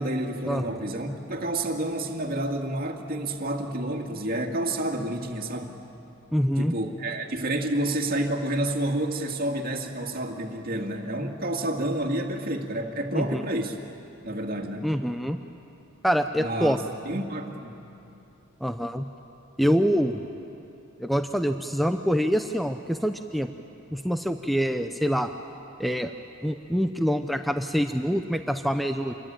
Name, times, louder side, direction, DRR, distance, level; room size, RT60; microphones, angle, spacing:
voice 1, 0.0-5.8 6.6-13.8 14.2-15.0 16.4-17.8, right 1 dB, 45° right, 2 dB, 2.2 m, -29 dB
voice 2, 6.3-6.7 13.1-13.4 14.8-15.4 16.0-16.8 18.6-19.0 19.6-20.2 21.0-23.5 23.9-25.3 25.8-26.1 26.4-29.1, equal, ahead, 7 dB, 0.7 m, -25 dB
27.5 x 23.0 x 9.1 m, 2.8 s
head